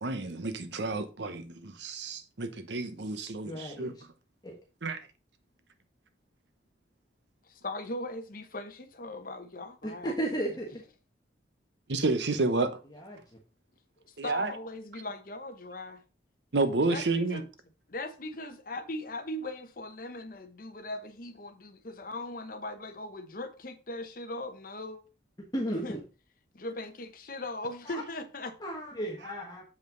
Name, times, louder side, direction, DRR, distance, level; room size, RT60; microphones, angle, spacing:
voice 1, 0.0-4.0 4.8-5.0 11.9-12.8 14.2-14.5 16.5-17.4, right 3 dB, 70° right, 0.9 m, -30 dB
voice 2, 3.4-3.9 4.4-4.6 10.0-10.8 12.9-13.2 25.5-26.0 27.9-28.0 28.6-29.6, right 1 dB, 20° left, 1.3 m, -34 dB
voice 3, 7.4-10.1 14.0-16.0 16.9-17.5 17.9-25.0 25.8-26.0 26.5-28.6, left 2 dB, 50° left, 0.9 m, -39 dB
7.4 x 5.4 x 3.8 m
head